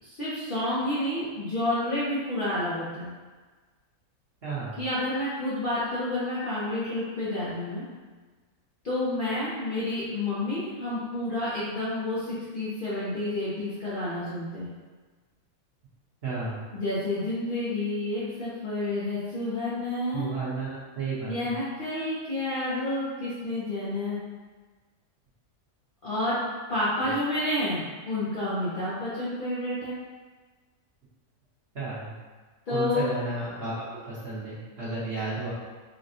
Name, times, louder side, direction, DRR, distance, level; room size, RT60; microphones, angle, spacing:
voice 1, 0.0-3.1 4.8-7.8 8.8-14.7 16.7-20.3 21.2-24.2 26.0-26.4 26.7-29.9 32.7-33.1, left 1 dB, 50° left, -10 dB, 0.6 m, -29 dB
voice 2, 4.4-4.8 16.2-16.6 20.1-21.5 27.0-27.1 31.7-32.1 32.7-35.5, right 3 dB, 50° right, -10 dB, 1.2 m, -33 dB
4.1 x 2.2 x 2.7 m, 1.4 s
omnidirectional pair, 1.5 m